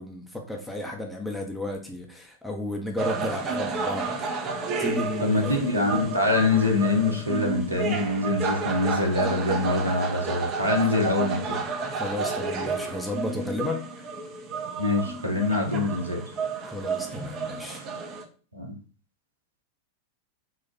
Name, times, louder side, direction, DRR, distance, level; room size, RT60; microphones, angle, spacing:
voice 1, 0.0-4.1 4.8-5.7 11.9-13.8 16.6-17.8, left 1 dB, 5° left, 1 dB, 0.8 m, -33 dB
sound 1, 3.0-18.2, right 4 dB, 30° right, 0.8 m, -31 dB
voice 2, 5.2-11.6 14.8-16.2 18.5-18.7, left 2 dB, 85° right, 2 dB, 1.0 m, -24 dB
4.1 x 2.5 x 4.3 m, 0.38 s
figure-of-eight pair, 90°, 0 cm